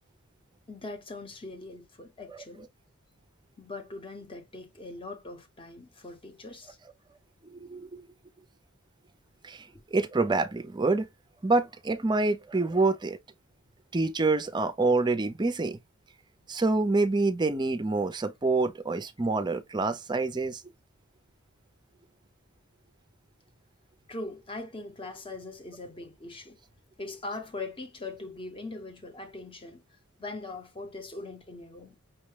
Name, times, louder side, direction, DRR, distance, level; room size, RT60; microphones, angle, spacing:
voice 1, 0.7-2.7 3.6-6.8 24.1-26.6 27.0-29.8 30.2-32.0, left 2 dB, 25° left, 0.8 m, -41 dB
voice 2, 7.5-8.1 9.4-9.6 9.9-11.1 11.4-13.2 13.9-15.8 16.5-20.6, right 3 dB, 20° right, 0.5 m, -26 dB
5.5 x 2.1 x 3.2 m
head